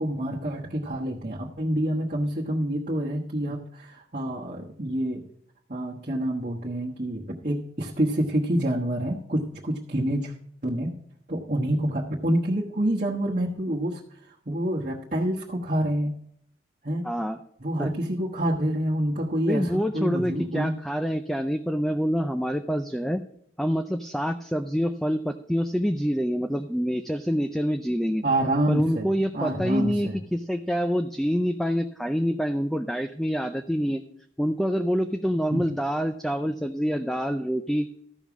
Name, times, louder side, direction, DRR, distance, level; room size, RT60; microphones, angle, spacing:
voice 1, 0.0-5.2 5.7-10.3 10.6-10.9 11.3-14.0 14.5-16.1 16.8-17.1 17.6-20.7 28.2-29.1 29.3-30.2 35.5-35.7, right 1 dB, 45° right, -4 dB, 1.2 m, -27 dB
voice 2, 17.0-17.4 17.8-17.9 19.5-23.2 23.6-28.2 28.7-34.0 34.4-37.9, equal, ahead, 7 dB, 0.4 m, -26 dB
13.5 x 5.5 x 6.0 m, 0.70 s
head